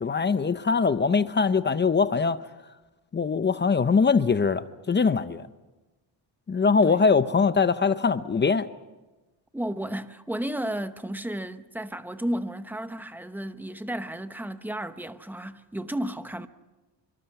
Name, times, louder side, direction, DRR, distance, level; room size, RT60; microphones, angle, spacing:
voice 1, 0.0-2.4 3.1-5.5 6.5-8.7, left 5 dB, 25° left, 0.7 m, -22 dB
voice 2, 9.5-16.5, right 1 dB, 5° right, 0.9 m, -33 dB
28.0 x 24.5 x 5.9 m
cardioid pair, 145°, 44 cm